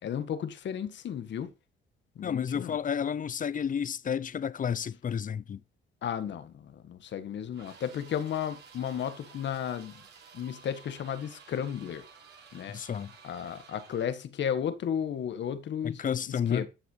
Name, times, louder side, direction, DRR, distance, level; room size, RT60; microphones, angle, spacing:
voice 1, 0.0-1.5 2.1-2.8 6.0-9.9 10.3-12.0 12.5-12.8 13.2-16.0 16.3-16.7, left 8 dB, 65° left, 1.7 m, -34 dB
voice 2, 2.2-5.6 12.7-13.1 15.8-16.7, left 7 dB, 40° left, 0.7 m, -31 dB
sound 1, 7.5-14.2, right 6 dB, 60° right, 6.1 m, -53 dB
14.0 x 6.2 x 5.6 m
cardioid pair, 90°, 20 cm